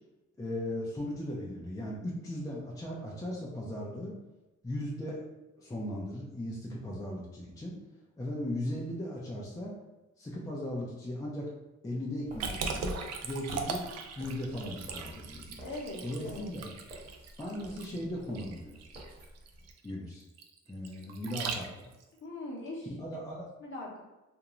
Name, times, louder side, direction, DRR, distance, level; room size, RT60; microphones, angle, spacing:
voice 1, 0.4-4.2 4.6-5.2 5.6-7.7 8.2-9.8 10.2-11.5 11.8-13.0 13.2-13.8 14.2-15.7 16.0-16.7 17.4-18.8 19.8-20.2 20.7-21.9 23.0-23.4, left 1 dB, 10° left, -4 dB, 0.5 m, -37 dB
sound 1, 12.3-19.7, right 1 dB, 30° right, 1.1 m, -51 dB
Liquid, 12.4-22.0, right 5 dB, 60° right, 0.4 m, -39 dB
voice 2, 15.6-16.5 22.2-22.9 23.6-24.0, left 2 dB, 40° left, -2 dB, 0.9 m, -41 dB
2.5 x 2.2 x 3.0 m, 1.0 s
cardioid pair, 90°, 30 cm